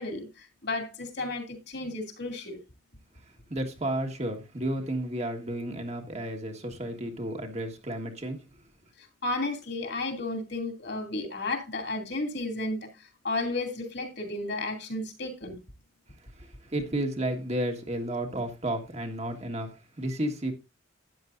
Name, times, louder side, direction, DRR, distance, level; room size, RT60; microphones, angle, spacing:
voice 1, 0.0-2.6 9.0-15.6, left 2 dB, 60° left, 2.7 m, -33 dB
voice 2, 3.5-8.4 16.3-20.5, right 1 dB, 35° right, 1.7 m, -32 dB
12.5 x 9.9 x 2.6 m
head